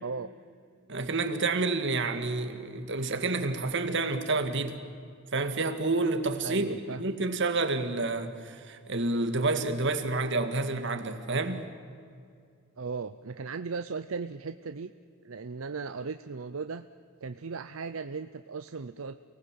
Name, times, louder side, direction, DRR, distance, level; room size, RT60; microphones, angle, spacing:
voice 1, 0.0-0.3 6.4-7.0 12.8-14.9 15.2-16.9 17.2-19.2, right 4 dB, 80° right, 0.7 m, -37 dB
voice 2, 0.9-4.8 5.3-6.7 7.0-11.6, right 3 dB, 60° right, 2.0 m, -29 dB
29.0 x 19.0 x 7.6 m
head